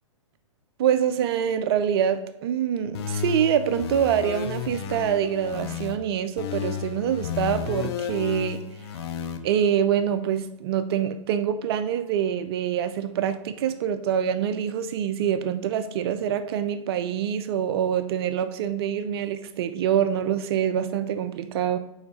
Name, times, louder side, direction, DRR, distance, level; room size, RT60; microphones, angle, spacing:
voice 1, 0.8-8.6 9.4-21.8, right 9 dB, 50° right, 11 dB, 0.5 m, -25 dB
sound 1, 2.9-6.0 6.4-9.4, left 7 dB, 50° left, 0.8 m, -32 dB
5.7 x 4.4 x 5.4 m, 0.94 s
hypercardioid pair, 125°, 17 cm